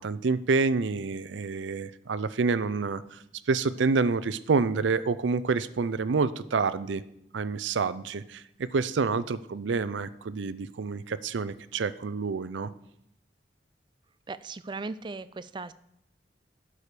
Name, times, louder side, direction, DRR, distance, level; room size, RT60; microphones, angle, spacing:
voice 1, 0.0-3.2 3.5-7.0 7.3-12.7, right 4 dB, 85° right, 16 dB, 0.5 m, -28 dB
voice 2, 14.3-15.7, right 3 dB, 25° right, 15 dB, 0.3 m, -37 dB
11.5 x 4.9 x 6.7 m, 0.78 s
head